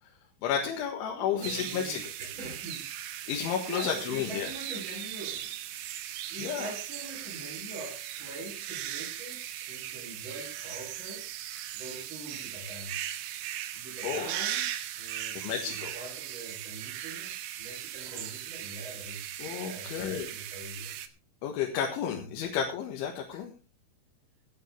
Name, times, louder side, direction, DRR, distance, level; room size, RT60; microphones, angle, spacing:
voice 1, 0.4-2.0 3.3-4.5 6.4-6.7 14.0-14.3 15.4-16.0 18.1-18.3 19.4-20.3 21.4-23.5, left 8 dB, 75° left, 1 dB, 4.0 m, -32 dB
voice 2, 1.1-2.9 3.7-5.5 6.3-11.3 11.7-13.0 13.7-14.7 15.0-21.0, right 2 dB, 25° right, -2 dB, 3.8 m, -44 dB
sound 1, 1.4-21.1, right 12 dB, 70° right, 2.4 m, -38 dB
16.5 x 12.0 x 3.4 m, 0.31 s
omnidirectional pair, 5.6 m